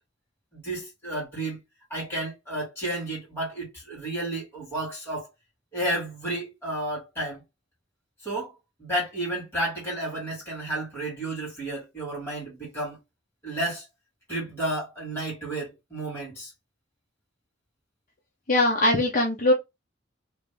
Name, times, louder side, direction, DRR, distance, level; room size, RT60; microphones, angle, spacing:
voice 1, 0.5-1.6 1.9-5.3 5.7-7.4 8.2-8.5 8.8-13.0 13.4-13.9 14.3-16.5, right 1 dB, 10° left, 2.2 m, -32 dB
voice 2, 18.5-19.5, left 1 dB, 40° left, 0.6 m, -21 dB
3.3 x 2.5 x 3.4 m
head